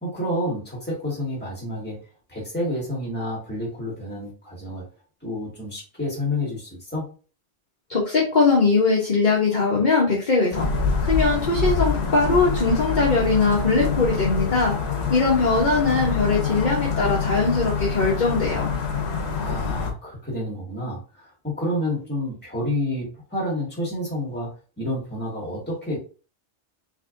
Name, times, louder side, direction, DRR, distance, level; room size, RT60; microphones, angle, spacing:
voice 1, 0.0-2.0 2.3-4.9 5.2-7.1 19.3-24.5 24.8-26.0, left 1 dB, 10° left, -4 dB, 2.0 m, -29 dB
voice 2, 7.9-10.7 11.0-14.8 15.1-18.7, left 4 dB, 45° left, -3 dB, 1.0 m, -21 dB
sound 1, 10.5-19.9, left 4 dB, 65° left, 1.2 m, -25 dB
4.1 x 3.3 x 2.6 m, 0.36 s
omnidirectional pair, 1.2 m